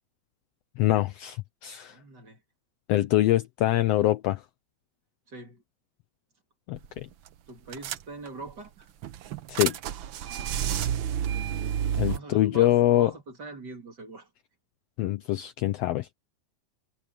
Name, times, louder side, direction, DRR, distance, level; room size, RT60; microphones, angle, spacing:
voice 1, 0.8-1.4 1.6-2.0 2.9-4.4 6.7-7.1 9.5-9.8 11.9-13.1 15.0-16.1, left 14 dB, 75° left, 1.5 m, -24 dB
voice 2, 1.9-2.4 5.3-5.6 7.5-8.9 10.2-10.8 12.1-14.3, right 2 dB, 35° right, 3.4 m, -43 dB
sound 1, 6.8-7.0 7.3-7.4 7.7-8.5 9.0-12.2, right 10 dB, 80° right, 1.1 m, -30 dB
omnidirectional pair, 3.3 m